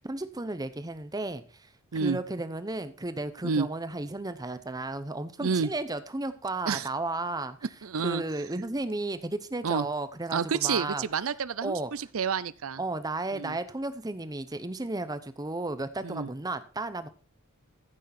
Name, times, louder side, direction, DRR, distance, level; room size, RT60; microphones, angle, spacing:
voice 1, 0.0-7.6 8.0-11.0 11.6-11.9 12.8-17.1, right 2 dB, 15° right, 0.8 m, -34 dB
voice 2, 7.8-8.2 9.6-9.8 10.3-12.8 13.3-13.6 16.0-16.3, right 5 dB, 70° right, 0.6 m, -29 dB
14.5 x 6.5 x 4.3 m
head